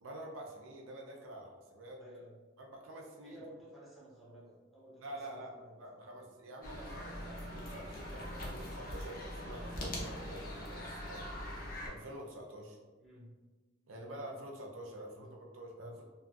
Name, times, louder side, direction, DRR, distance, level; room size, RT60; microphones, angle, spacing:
voice 1, 0.0-2.0 2.6-3.4 5.0-5.5 5.8-11.3 11.8-12.8 13.9-16.0, right 1 dB, 75° right, 0 dB, 0.5 m, -47 dB
voice 2, 2.0-2.4 3.2-6.2 13.0-13.3 14.9-15.3 15.8-15.9, equal, ahead, -8 dB, 0.6 m, -55 dB
sound 1, 6.6-11.9, left 1 dB, 45° left, 0.6 m, -42 dB
2.7 x 2.5 x 2.3 m, 1.3 s
head